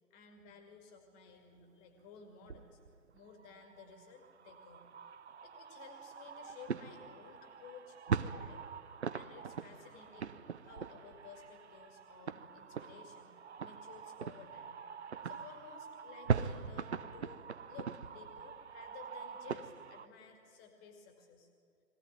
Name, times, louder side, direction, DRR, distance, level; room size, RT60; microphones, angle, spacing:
voice 1, 0.1-2.8 3.1-4.9 5.4-8.6 9.1-13.3 13.6-14.8 15.2-17.4 17.7-21.5, left 6 dB, 15° left, 4 dB, 2.2 m, -55 dB
sound 1, 2.5-20.1, right 6 dB, 45° right, 0.8 m, -41 dB
22.0 x 17.0 x 9.3 m, 2.3 s
figure-of-eight pair, 140°, 47 cm